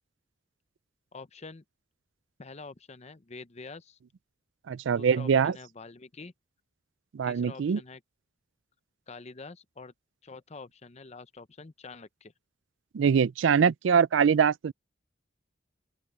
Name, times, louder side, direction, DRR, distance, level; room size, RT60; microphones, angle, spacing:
voice 1, 1.1-1.6 2.4-4.0 5.0-6.3 7.2-8.0 9.1-9.9 10.2-12.3, left 3 dB, 35° left, 0.7 m, -46 dB
voice 2, 4.7-5.5 7.1-7.8 12.9-14.7, right 7 dB, 75° right, 0.4 m, -23 dB
open air
head